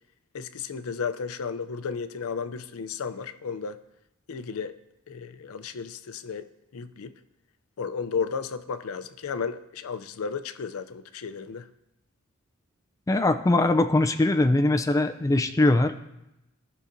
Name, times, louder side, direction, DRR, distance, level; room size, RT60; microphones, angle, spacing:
voice 1, 0.3-3.8 4.3-4.8 5.1-6.4 6.7-7.1 7.8-11.7, left 5 dB, 80° left, 11 dB, 0.5 m, -33 dB
voice 2, 13.1-16.0, left 2 dB, 15° left, 8 dB, 0.3 m, -21 dB
16.5 x 5.5 x 2.6 m, 0.90 s
head